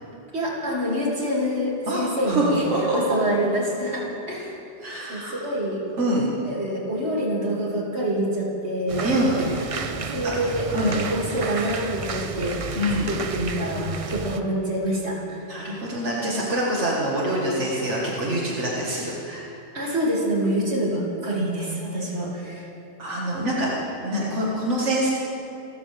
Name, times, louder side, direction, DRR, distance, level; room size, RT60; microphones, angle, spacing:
voice 1, 0.3-4.6 5.1-5.8 6.1-9.5 10.1-12.6 13.0-15.4 19.7-22.7, right 1 dB, 65° right, -4 dB, 3.1 m, -26 dB
voice 2, 1.9-2.5 2.7-3.0 4.8-5.4 6.0-6.3 9.0-9.4 10.2-10.4 10.7-11.0 12.8-13.1 15.5-19.5 23.0-23.7 24.0-25.1, right 1 dB, 85° right, -5 dB, 2.3 m, -25 dB
sound 1, 8.9-14.4, right 4 dB, 40° right, 0.6 m, -32 dB
28.5 x 14.0 x 3.6 m, 2.7 s
omnidirectional pair, 1.2 m